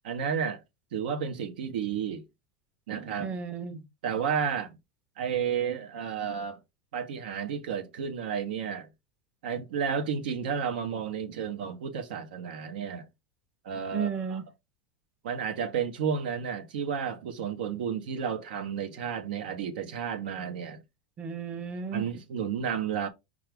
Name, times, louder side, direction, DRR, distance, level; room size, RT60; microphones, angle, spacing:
voice 1, 0.0-0.6 0.9-2.2 2.9-3.3 4.0-4.8 5.2-6.6 6.9-8.9 9.4-13.1 13.6-14.4 15.2-20.8 21.9-23.1, right 7 dB, 90° right, 0.8 m, -32 dB
voice 2, 3.2-3.8 13.9-14.5 21.2-22.1, right 6 dB, 25° right, 0.6 m, -33 dB
4.9 x 2.3 x 3.4 m
supercardioid pair, 155°, 5 cm